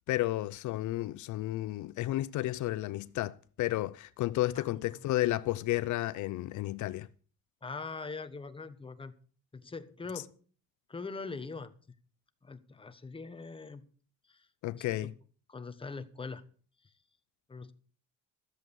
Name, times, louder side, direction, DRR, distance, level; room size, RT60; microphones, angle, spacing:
voice 1, 0.1-7.1 14.6-15.1, left 16 dB, 75° left, 0.6 m, -32 dB
voice 2, 7.6-9.2 9.5-10.3 10.9-11.7 12.4-13.8 14.3-14.4 14.7-15.1 15.5-16.4 17.5-17.7, left 4 dB, 15° left, 1.2 m, -42 dB
13.5 x 7.7 x 6.9 m
cardioid pair, 110°, 30 cm